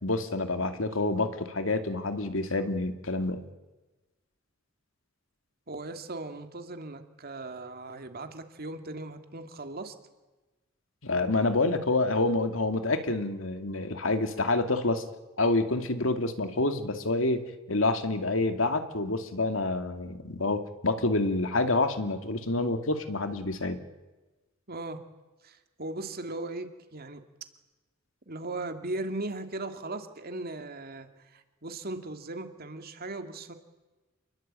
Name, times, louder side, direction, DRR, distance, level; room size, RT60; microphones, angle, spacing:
voice 1, 0.0-3.5 11.0-15.0 15.4-23.8, left 2 dB, 75° left, 8 dB, 2.4 m, -28 dB
voice 2, 5.7-9.9 24.7-25.0 25.4-27.2 28.3-33.5, right 2 dB, 50° right, 7 dB, 2.6 m, -38 dB
28.5 x 21.5 x 8.9 m, 1.1 s
head